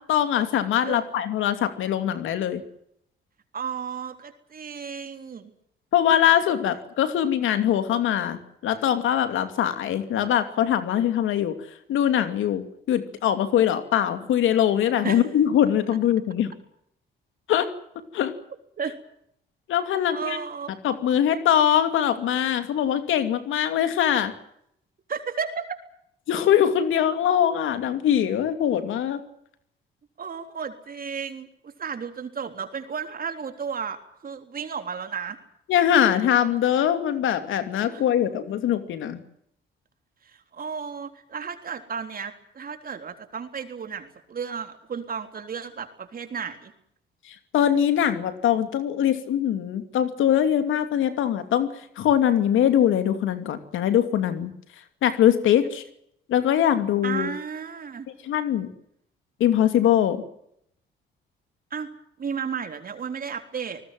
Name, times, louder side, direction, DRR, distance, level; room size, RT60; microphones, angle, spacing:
voice 1, 0.0-2.6 5.9-11.6 11.9-16.5 17.5-17.7 18.1-18.3 19.7-20.4 20.8-24.3 26.3-29.2 35.7-39.2 47.5-54.5 55.0-55.8 56.3-57.3 58.2-58.7 59.4-60.2, left 10 dB, 80° left, 9 dB, 2.7 m, -22 dB
voice 2, 3.5-5.5 15.0-15.2 18.8-19.0 20.1-20.7 25.1-25.8 30.2-35.4 37.9-38.0 40.2-46.7 57.0-58.1 61.7-61.9 62.2-63.8, right 6 dB, 45° right, 7 dB, 3.7 m, -33 dB
26.5 x 20.0 x 7.7 m, 0.72 s
cardioid pair, 90°, 20 cm